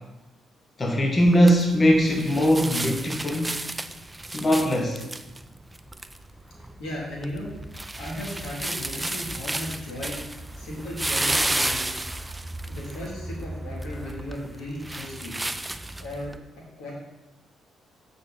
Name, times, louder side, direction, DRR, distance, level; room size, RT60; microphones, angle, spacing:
voice 1, 0.8-3.5 4.3-5.0, equal, 30° left, 2 dB, 1.0 m, -20 dB
sound 1, 1.2-16.4, right 1 dB, 10° right, 0.4 m, -33 dB
voice 2, 6.5-10.2 10.5-11.9 12.6-15.3 16.0-16.3 16.8-16.9, left 1 dB, 85° left, -4 dB, 2.5 m, -36 dB
8.5 x 5.1 x 4.0 m, 1.0 s
cardioid pair, 90°, 0 cm